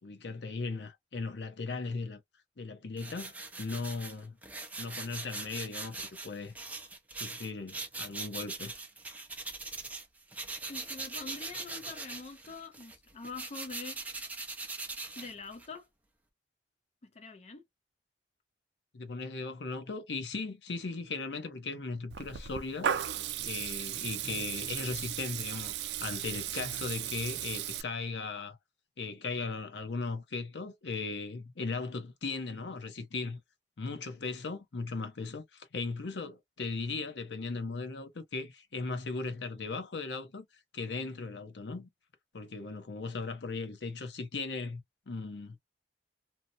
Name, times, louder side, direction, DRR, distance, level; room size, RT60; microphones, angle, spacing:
voice 1, 0.0-2.2 2.6-4.4 4.8-6.5 7.1-8.7 18.9-22.9 23.4-28.6 29.0-33.4 33.8-40.5 40.7-41.9 42.3-45.6, left 3 dB, 75° left, 0.7 m, -38 dB
sound 1, 3.0-10.1 10.3-15.8, right 3 dB, 10° right, 0.6 m, -41 dB
voice 2, 10.7-14.0 15.1-15.9 17.0-17.6, left 3 dB, 40° left, 0.5 m, -45 dB
Water tap faucet / Liquid, 22.1-27.8, right 9 dB, 70° right, 0.4 m, -36 dB
2.8 x 2.0 x 2.5 m
head